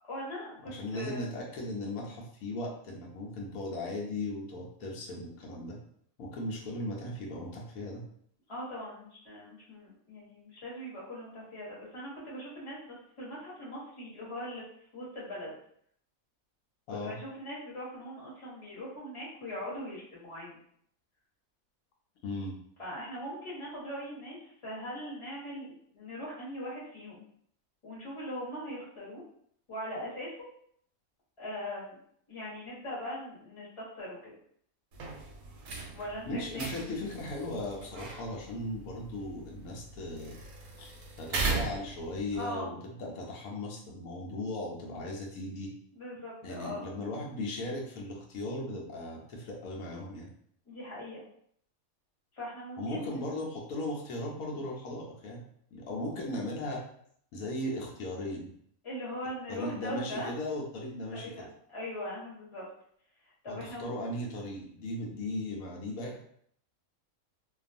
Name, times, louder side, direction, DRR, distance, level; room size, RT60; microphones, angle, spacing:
voice 1, 0.0-1.3 8.5-14.6 14.9-15.5 17.0-20.6 22.8-27.2 27.8-29.2 29.7-30.5 31.4-32.0 32.3-34.3 35.9-36.7 42.3-42.7 45.9-46.9 50.6-51.2 52.3-53.2 58.8-60.3 61.1-62.7 63.4-63.9, equal, 25° left, -7 dB, 1.0 m, -40 dB
voice 2, 0.6-5.8 6.2-8.0 16.9-17.2 22.2-22.6 36.3-40.4 40.8-45.7 46.4-50.3 52.8-55.4 55.7-56.8 57.3-58.5 59.5-61.5 63.5-66.2, left 1 dB, 85° left, -1 dB, 1.0 m, -37 dB
sound 1, 34.9-42.4, right 4 dB, 90° right, 1.1 m, -39 dB
2.5 x 2.3 x 2.5 m, 0.64 s
omnidirectional pair, 1.5 m